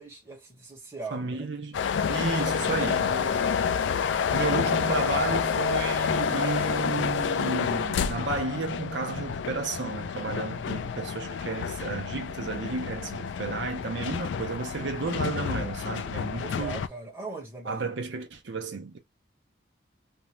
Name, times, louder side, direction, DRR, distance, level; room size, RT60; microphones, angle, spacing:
voice 1, 0.0-1.5 2.4-3.7 16.4-17.9, right 3 dB, 15° right, 1.1 m, -41 dB
voice 2, 1.1-1.8 2.1-3.4 4.3-16.8 17.7-19.0, right 3 dB, 70° right, 0.5 m, -32 dB
sound 1, 1.7-16.9, left 7 dB, 70° left, 0.3 m, -29 dB
2.6 x 2.1 x 2.9 m
head